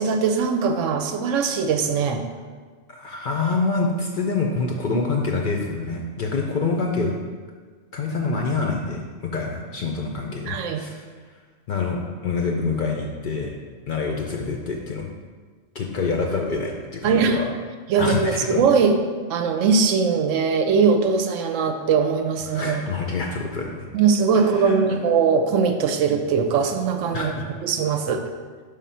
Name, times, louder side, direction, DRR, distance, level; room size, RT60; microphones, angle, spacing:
voice 1, 0.0-2.2 4.9-5.0 10.5-10.9 17.0-17.4 17.9-19.0 19.3-22.8 23.9-27.3 27.6-28.2, right 5 dB, 80° right, 6 dB, 0.9 m, -21 dB
voice 2, 2.9-7.1 7.9-11.0 11.7-13.5 13.9-15.1 15.7-17.5 18.0-18.6 22.5-23.9 24.3-25.0 27.1-27.5, left 4 dB, 55° left, 1 dB, 0.6 m, -26 dB
5.0 x 3.7 x 5.6 m, 1.5 s
omnidirectional pair, 1.3 m